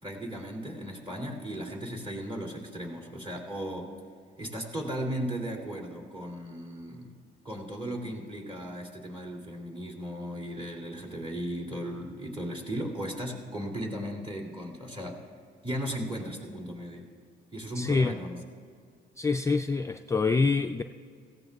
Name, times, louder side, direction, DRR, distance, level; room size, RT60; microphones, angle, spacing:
voice 1, 0.0-3.9 4.4-7.1 7.4-15.2 15.6-17.1 17.5-18.4, equal, 25° right, -1 dB, 2.7 m, -36 dB
voice 2, 17.8-18.2 19.2-20.8, left 4 dB, 15° left, 7 dB, 0.3 m, -26 dB
17.5 x 15.5 x 2.4 m, 2.2 s
cardioid pair, 90°, 20 cm